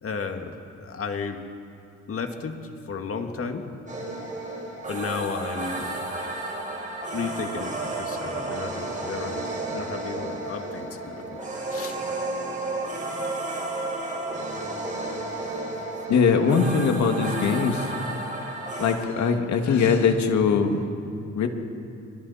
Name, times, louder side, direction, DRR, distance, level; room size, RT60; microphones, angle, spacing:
voice 1, 0.0-1.4 2.1-3.7 4.9-6.0 7.1-9.5 9.7-12.0, left 5 dB, 50° left, 5 dB, 2.0 m, -33 dB
sound 1, 3.9-19.0, right 2 dB, 25° right, 5.5 m, -32 dB
voice 2, 16.1-17.9 18.8-21.5, left 5 dB, 65° left, 5 dB, 2.3 m, -22 dB
27.5 x 24.5 x 4.3 m, 2.6 s
cardioid pair, 90°, 30 cm